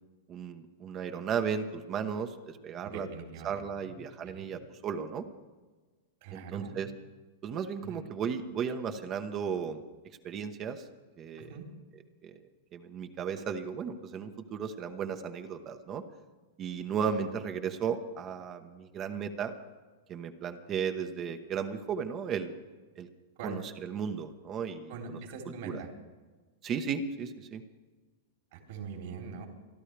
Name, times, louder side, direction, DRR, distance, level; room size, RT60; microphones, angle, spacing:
voice 1, 0.3-3.1 3.4-5.2 6.3-6.9 7.4-9.8 10.2-10.9 11.2-11.5 12.2-12.4 12.7-16.0 16.6-19.5 20.1-22.5 23.0-23.1 23.4-25.2 25.6-25.8 26.6-27.6, right 7 dB, 35° right, 7 dB, 1.2 m, -35 dB
voice 2, 2.8-3.9 4.2-4.5 6.2-6.7 7.8-8.0 11.4-11.7 23.4-23.6 24.9-25.9 28.5-29.5, right 5 dB, 60° right, 1 dB, 3.6 m, -42 dB
28.0 x 11.5 x 3.4 m, 1.3 s
hypercardioid pair, 110°, 0 cm